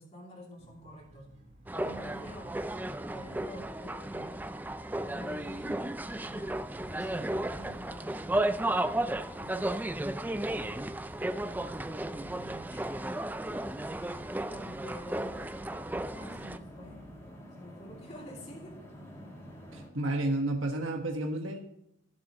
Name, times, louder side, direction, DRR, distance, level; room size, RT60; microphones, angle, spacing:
voice 1, 0.0-1.3 1.7-2.5 3.1-4.7 5.0-5.8 6.1-8.4 9.2-10.5 11.7-12.7 14.4-15.6 16.1-17.1 17.6-18.8, equal, 35° left, -2 dB, 2.9 m, -48 dB
sound 1, 0.6-17.3, equal, 35° right, 2.4 m, -57 dB
sound 2, 1.7-16.6, right 1 dB, 10° right, 0.3 m, -34 dB
sound 3, 5.3-19.9, equal, 15° left, 2.6 m, -52 dB
voice 2, 19.7-21.6, right 1 dB, 85° right, 3 dB, 1.4 m, -31 dB
17.0 x 7.6 x 3.0 m, 0.79 s
head